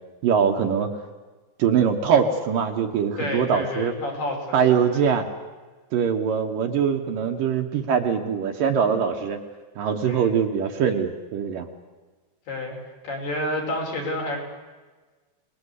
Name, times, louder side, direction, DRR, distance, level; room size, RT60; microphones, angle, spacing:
voice 1, 0.2-0.9 1.6-3.9 4.5-5.3 5.9-9.4 9.8-11.7, right 7 dB, 65° right, 4 dB, 2.7 m, -22 dB
voice 2, 3.2-4.6 4.9-5.0 10.1-10.3 12.5-14.4, left 1 dB, 70° left, 0 dB, 7.1 m, -30 dB
29.5 x 20.5 x 8.3 m, 1.3 s
omnidirectional pair, 4.7 m